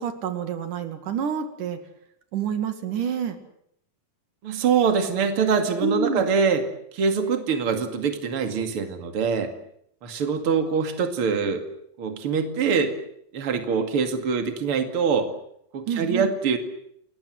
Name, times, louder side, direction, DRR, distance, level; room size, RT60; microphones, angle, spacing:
voice 1, 0.0-1.8 2.3-3.4 5.8-6.2 15.9-16.3, right 7 dB, 85° right, 8 dB, 3.8 m, -28 dB
voice 2, 4.4-6.6 6.9-9.5 10.0-11.7 12.0-12.9 13.3-15.3 15.7-16.6, right 5 dB, 45° right, 6 dB, 3.0 m, -24 dB
29.0 x 21.0 x 7.8 m, 0.72 s
omnidirectional pair, 3.5 m